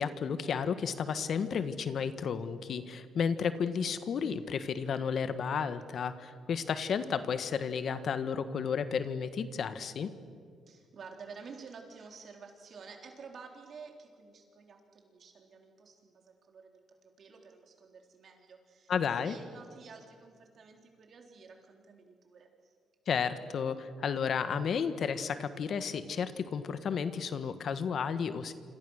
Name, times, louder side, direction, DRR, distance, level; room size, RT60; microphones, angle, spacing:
voice 1, 0.0-10.1 18.9-19.4 23.1-28.5, left 6 dB, 60° left, 11 dB, 1.5 m, -32 dB
voice 2, 10.7-22.7, right 5 dB, 55° right, 3 dB, 4.0 m, -51 dB
27.0 x 26.5 x 6.6 m, 2.2 s
cardioid pair, 90°, 0 cm